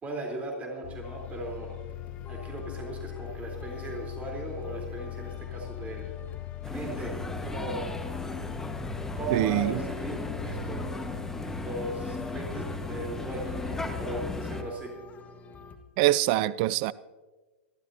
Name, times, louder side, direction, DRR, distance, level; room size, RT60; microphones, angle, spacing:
voice 1, 0.0-1.7 2.3-6.1 6.7-7.2 7.4-7.9 9.1-10.9 11.6-14.9, right 2 dB, 25° right, 0 dB, 3.9 m, -37 dB
sound 1, 0.8-14.4, left 17 dB, 50° left, 0.4 m, -40 dB
sound 2, 1.0-15.8, left 5 dB, 25° left, 1.6 m, -49 dB
sound 3, 6.6-14.6, left 2 dB, 5° left, 1.5 m, -36 dB
voice 2, 9.3-9.8 16.0-16.9, right 16 dB, 50° right, 20 dB, 0.4 m, -24 dB
27.5 x 12.5 x 2.8 m, 1.3 s
hypercardioid pair, 105°, 6 cm